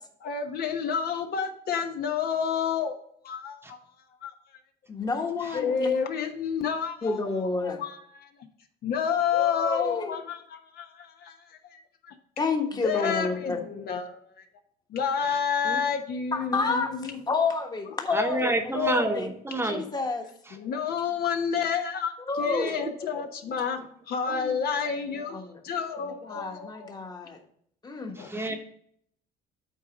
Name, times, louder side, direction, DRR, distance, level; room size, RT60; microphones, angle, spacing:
voice 1, 0.2-3.0 3.2-3.8 4.2-4.3 5.5-7.2 7.6-8.3 8.8-11.8 12.1-12.2 12.8-14.4 14.9-17.2 20.5-23.8 24.1-26.9 28.1-28.3, left 7 dB, 65° left, 5 dB, 1.0 m, -30 dB
voice 2, 4.9-5.9 7.0-7.8 9.3-10.2 12.4-13.6 16.3-16.9 17.3-19.3 19.7-20.3 22.3-22.8 24.3-24.6 25.3-25.6 26.2-27.4 27.8-28.2, left 4 dB, 25° left, 4 dB, 1.3 m, -29 dB
voice 3, 18.1-19.8 20.5-20.6 22.4-22.9 28.2-28.6, right 1 dB, 15° right, 5 dB, 0.9 m, -29 dB
8.3 x 4.1 x 5.0 m, 0.65 s
cardioid pair, 110°, 17 cm